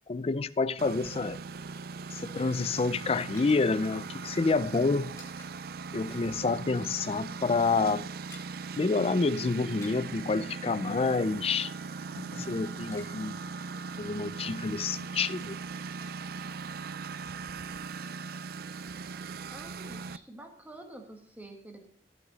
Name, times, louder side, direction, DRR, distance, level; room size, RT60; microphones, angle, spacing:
voice 1, 0.1-1.4 2.1-5.2 5.9-8.1 8.8-11.7 12.1-13.4 14.0-15.6, left 4 dB, 30° left, 0.4 m, -28 dB
Engine, 0.8-20.2, right 4 dB, 55° right, 0.4 m, -39 dB
sound 1, 2.9-5.5 5.8-6.0 6.3-7.0 7.3-7.4 7.7-8.6 9.6-10.2 10.9-12.4 12.7-13.2 13.5-13.6 14.0-14.8 15.4-16.7 17.0-17.1, left 2 dB, 15° left, 2.9 m, -55 dB
voice 2, 19.5-21.9, right 1 dB, 10° right, 1.6 m, -48 dB
14.5 x 8.1 x 4.0 m
head